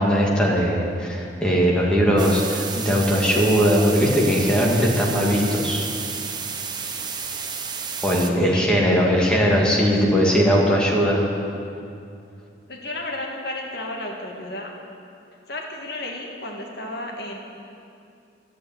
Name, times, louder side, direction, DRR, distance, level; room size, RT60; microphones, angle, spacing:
voice 1, 0.0-5.9 8.0-11.2, equal, 5° left, -4 dB, 2.1 m, -19 dB
sound 1, 2.2-8.3, right 6 dB, 25° right, 0.8 m, -31 dB
voice 2, 10.1-10.6 12.7-14.7 15.5-17.4, left 1 dB, 60° left, 0 dB, 1.7 m, -33 dB
12.5 x 8.2 x 9.2 m, 2.5 s
head